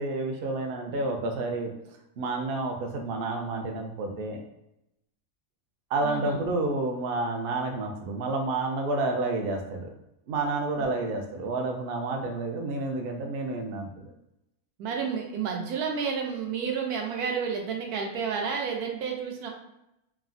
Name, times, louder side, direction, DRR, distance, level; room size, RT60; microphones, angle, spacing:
voice 1, 0.0-1.7 2.2-4.4 5.9-9.9 10.3-14.1, right 2 dB, 70° right, 3 dB, 0.5 m, -30 dB
voice 2, 6.0-6.4 10.8-10.9 14.8-19.5, right 6 dB, 90° right, 1 dB, 1.1 m, -31 dB
3.3 x 2.0 x 2.5 m, 0.84 s
omnidirectional pair, 1.5 m